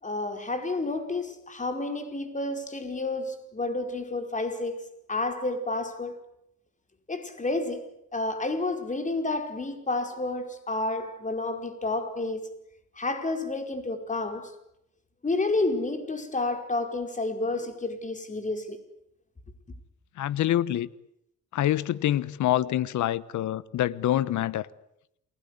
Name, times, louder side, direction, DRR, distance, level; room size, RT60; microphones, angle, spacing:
voice 1, 0.0-6.2 7.1-7.9 8.1-12.5 13.0-14.5 15.2-18.8, left 2 dB, 25° left, 5.1 m, -30 dB
voice 2, 20.2-20.9 21.5-24.7, left 12 dB, 75° left, 1.2 m, -26 dB
29.0 x 20.0 x 9.8 m
cardioid pair, 90°, 30 cm